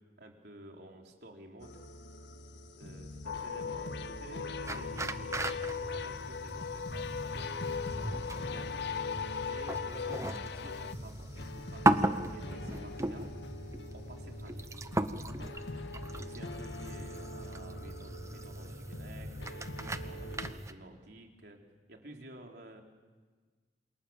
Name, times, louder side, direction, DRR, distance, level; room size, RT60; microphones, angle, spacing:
voice 1, 0.2-1.8 2.8-8.7 9.5-13.2 13.9-14.7 15.2-15.5 16.1-21.6 21.9-22.8, right 1 dB, 65° right, 2 dB, 3.9 m, -52 dB
sound 1, 1.6-20.5, left 1 dB, 85° left, 1.8 m, -45 dB
sound 2, 3.3-10.9, left 6 dB, 70° left, 0.9 m, -38 dB
sound 3, 4.7-20.7, right 2 dB, 15° right, 1.0 m, -37 dB
28.0 x 26.5 x 7.3 m, 1.4 s
head